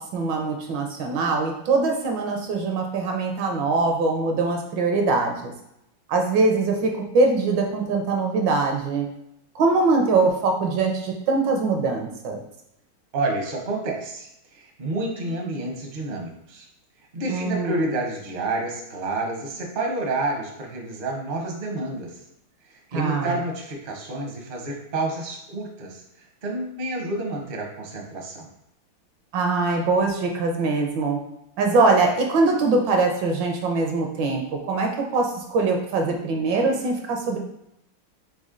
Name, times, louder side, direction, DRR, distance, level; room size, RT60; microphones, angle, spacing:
voice 1, 0.0-5.5 6.1-9.1 9.5-12.4 17.3-17.9 22.9-23.3 29.3-31.2 31.6-37.4, right 3 dB, 75° right, 2 dB, 1.2 m, -22 dB
voice 2, 13.1-16.7 17.1-22.1 22.7-28.5, right 2 dB, 50° right, 0 dB, 0.6 m, -29 dB
4.2 x 3.4 x 3.7 m, 0.80 s
omnidirectional pair, 2.3 m